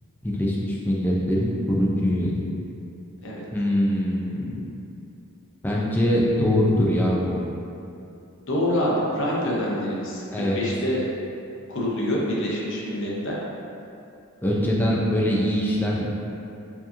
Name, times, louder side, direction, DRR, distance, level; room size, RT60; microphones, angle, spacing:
voice 1, 0.2-2.4 3.5-4.7 5.6-7.4 10.3-10.6 14.4-16.1, equal, 10° left, -4 dB, 0.4 m, -23 dB
voice 2, 8.5-11.0 11.7-13.4, left 1 dB, 55° left, -5 dB, 0.7 m, -26 dB
4.5 x 2.9 x 2.6 m, 2.7 s
head